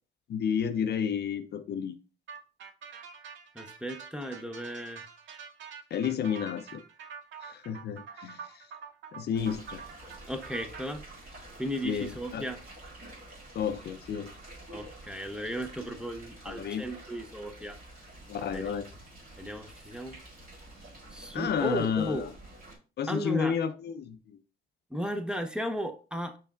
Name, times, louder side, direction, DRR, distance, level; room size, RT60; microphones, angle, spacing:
voice 1, 0.3-2.0 5.9-6.8 7.4-8.7 9.1-9.8 11.8-12.4 13.5-14.3 16.5-16.9 18.3-18.9 21.3-22.3 23.0-24.4, left 7 dB, 55° left, 0.5 m, -31 dB
sound 1, 2.3-10.8, right 6 dB, 70° right, 0.6 m, -46 dB
voice 2, 3.5-5.1 10.3-11.0 11.6-12.6 14.7-17.8 18.5-18.7 19.4-20.2 21.1-22.3 23.1-23.6 24.9-26.4, equal, 5° right, 0.6 m, -35 dB
sound 2, 9.3-22.8, right 1 dB, 45° right, 1.9 m, -49 dB
5.5 x 4.0 x 2.3 m
cardioid pair, 90°, 20 cm